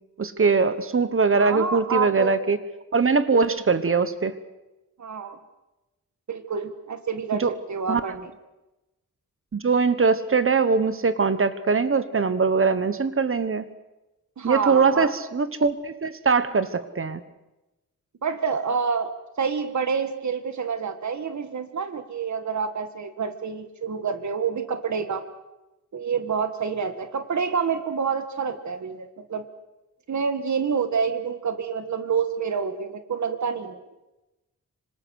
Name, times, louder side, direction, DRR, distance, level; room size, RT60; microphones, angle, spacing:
voice 1, 0.2-2.6 2.9-4.3 7.4-7.5 7.9-8.0 9.5-13.6 14.4-17.2, right 4 dB, 45° right, 12 dB, 1.3 m, -22 dB
voice 2, 1.3-2.4 5.0-5.4 6.3-8.3 14.4-15.1 18.2-19.1 19.4-25.2 25.9-29.5 30.1-33.8, right 6 dB, 65° right, 8 dB, 1.7 m, -28 dB
26.5 x 26.0 x 6.5 m, 1.0 s
wide cardioid pair, 165°, 31 cm